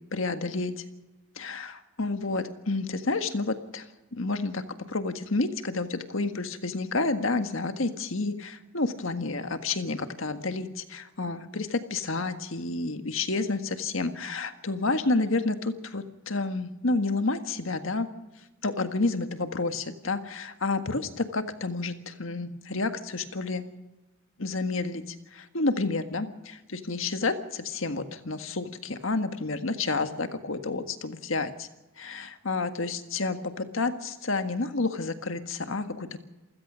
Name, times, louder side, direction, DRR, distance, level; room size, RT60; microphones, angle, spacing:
voice 1, 0.1-0.8 1.3-18.1 18.6-23.7 24.4-31.7 32.0-36.2, left 3 dB, 70° left, 8 dB, 1.7 m, -30 dB
28.0 x 16.0 x 6.3 m, 1.1 s
head